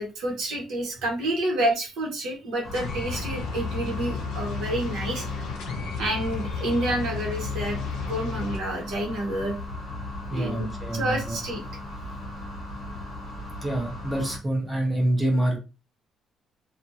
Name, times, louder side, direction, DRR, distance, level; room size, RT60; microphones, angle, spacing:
voice 1, 0.0-5.4 6.0-9.5 10.3-11.6, right 1 dB, 75° right, 0 dB, 1.1 m, -29 dB
sound 1, 2.6-14.4, left 1 dB, 20° left, 1.0 m, -37 dB
sound 2, 2.7-8.6, left 5 dB, 75° left, 0.5 m, -33 dB
voice 2, 10.3-11.4 13.6-15.6, right 1 dB, 5° right, 0 dB, 0.7 m, -26 dB
2.5 x 2.3 x 2.7 m, 0.29 s
cardioid pair, 175°, 0 cm